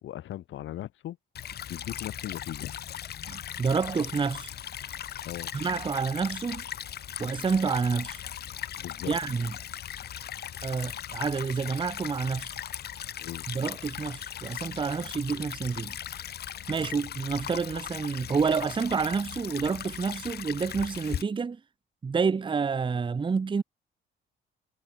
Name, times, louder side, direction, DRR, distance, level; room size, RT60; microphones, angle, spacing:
voice 1, 0.0-1.2 1.7-2.7 5.2-5.5 8.8-9.1 13.2-13.5, left 13 dB, 75° left, 1.7 m, -38 dB
Stream / Trickle dribble, 1.4-21.2, left 10 dB, 55° left, 0.8 m, -38 dB
voice 2, 3.3-4.5 5.5-6.6 7.2-8.2 9.1-9.5 10.6-12.5 13.5-16.0 16.7-21.6 22.0-23.6, right 5 dB, 25° right, 0.7 m, -29 dB
cardioid pair, 90°, 20 cm